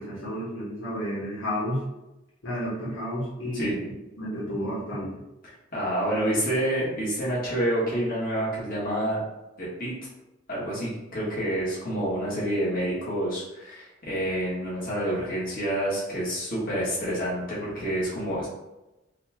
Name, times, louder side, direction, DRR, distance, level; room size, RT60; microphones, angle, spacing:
voice 1, 0.0-1.8 2.4-3.8 4.2-5.1, equal, 90° left, -7 dB, 1.2 m, -31 dB
voice 2, 5.4-9.2 9.6-9.9 10.5-18.5, right 1 dB, 50° left, -7 dB, 1.4 m, -28 dB
4.1 x 2.3 x 2.8 m, 0.98 s
head